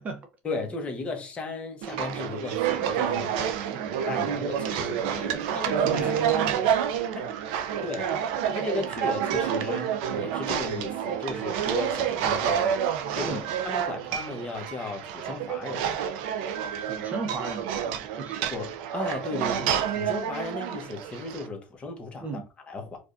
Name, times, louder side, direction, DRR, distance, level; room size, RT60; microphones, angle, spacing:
voice 1, 0.4-3.6 4.1-6.1 7.1-7.3 7.8-8.2 8.5-12.7 13.1-16.0 18.5-23.0, left 3 dB, 25° left, 0.9 m, -35 dB
sound 1, 1.8-21.5, right 9 dB, 80° right, 0.4 m, -28 dB
voice 2, 3.7-4.2 5.9-6.6 13.2-13.4 16.8-18.4 22.2-22.5, right 4 dB, 30° right, 0.7 m, -36 dB
4.7 x 2.3 x 2.5 m
cardioid pair, 140°, 5 cm